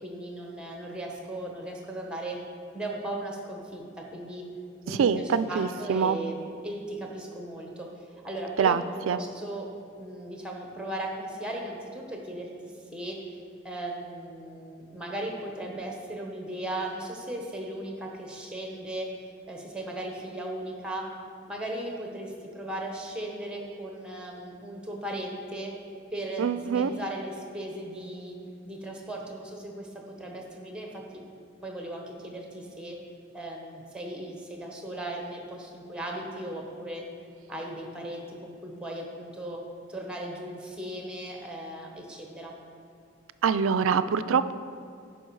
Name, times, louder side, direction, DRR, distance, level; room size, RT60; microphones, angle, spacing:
voice 1, 0.0-2.4 2.7-4.4 4.8-6.4 6.6-8.7 9.1-9.7 10.0-13.2 13.6-19.1 19.5-21.1 21.5-25.7 26.1-28.4 28.6-31.2 31.6-33.0 33.3-37.0 37.5-39.6 39.9-42.5, right 1 dB, 5° right, 0 dB, 1.0 m, -37 dB
voice 2, 4.9-6.2 8.6-9.2 26.4-26.9 43.4-44.5, right 6 dB, 85° right, 13 dB, 0.3 m, -25 dB
11.0 x 5.0 x 4.7 m, 2.4 s
head